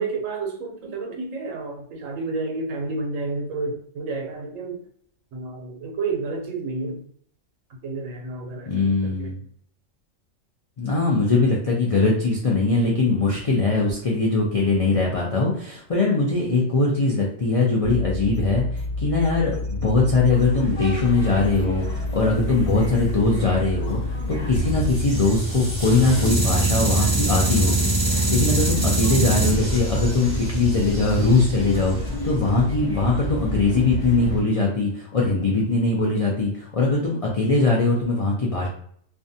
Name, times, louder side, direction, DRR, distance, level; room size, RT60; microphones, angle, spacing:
voice 1, 0.0-4.9 5.3-7.0 7.8-9.3, right 3 dB, 85° right, 1 dB, 1.0 m, -30 dB
voice 2, 8.7-9.4 10.8-38.7, left 3 dB, 65° left, -3 dB, 0.3 m, -21 dB
sound 1, 17.8-25.0, left 2 dB, 50° right, 0.8 m, -29 dB
sound 2, 20.3-34.4, equal, 30° left, 0.8 m, -33 dB
sound 3, 24.5-32.6, right 2 dB, 20° right, 1.1 m, -24 dB
2.6 x 2.2 x 2.6 m, 0.62 s
omnidirectional pair, 1.3 m